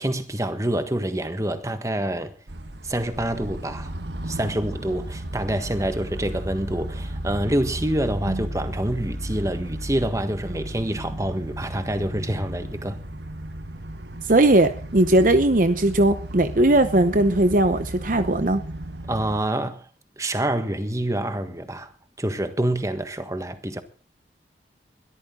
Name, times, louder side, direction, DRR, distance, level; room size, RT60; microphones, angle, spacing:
voice 1, 0.0-2.3 2.8-3.9 4.2-13.0 19.1-19.9 20.2-21.9 22.2-23.8, right 1 dB, 20° right, 1.5 m, -27 dB
sound 1, 2.5-19.4, right 1 dB, 70° right, 1.5 m, -34 dB
voice 2, 14.3-18.6, right 1 dB, 45° right, 0.9 m, -19 dB
21.5 x 13.5 x 3.8 m
head